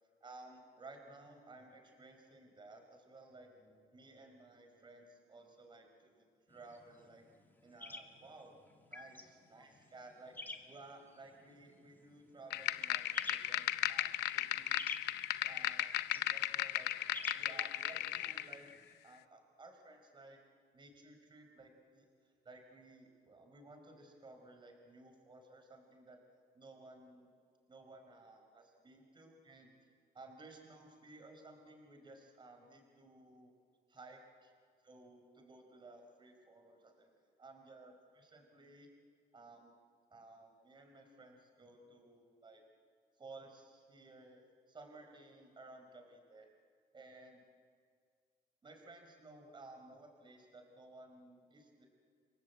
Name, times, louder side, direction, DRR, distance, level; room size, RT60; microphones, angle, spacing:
voice 1, 0.2-7.3 7.6-8.6 8.9-15.0 15.3-16.9 17.3-18.7 19.0-20.4 20.7-22.1 22.4-27.3 27.7-33.5 33.9-34.5 34.8-38.9 39.3-39.7 40.1-42.6 43.2-46.5 46.9-47.4 48.6-51.9, right 2 dB, 30° right, 4 dB, 4.8 m, -57 dB
sound 1, 6.5-18.9, left 2 dB, 10° left, 2.5 m, -53 dB
sound 2, 12.5-18.5, left 14 dB, 80° left, 0.8 m, -36 dB
29.5 x 24.0 x 8.2 m, 2.1 s
cardioid pair, 110°, 17 cm